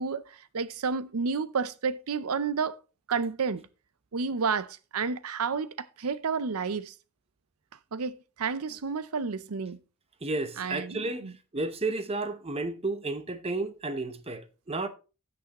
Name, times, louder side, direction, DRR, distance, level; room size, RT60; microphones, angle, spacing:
voice 1, 0.0-2.8 3.1-3.7 4.1-6.9 7.9-9.8 10.6-11.3, right 5 dB, 75° right, 0.6 m, -31 dB
voice 2, 10.2-11.3 11.5-14.9, right 2 dB, 25° right, 0.8 m, -32 dB
16.0 x 6.1 x 3.0 m
head